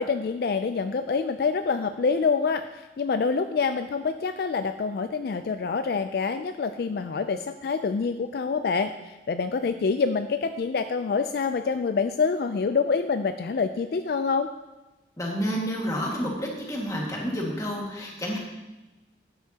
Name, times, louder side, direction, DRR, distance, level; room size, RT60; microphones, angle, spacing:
voice 1, 0.0-14.5, left 5 dB, 60° left, 8 dB, 0.3 m, -26 dB
voice 2, 15.2-18.4, equal, 20° left, -2 dB, 1.8 m, -29 dB
12.5 x 9.4 x 2.8 m, 1.1 s
head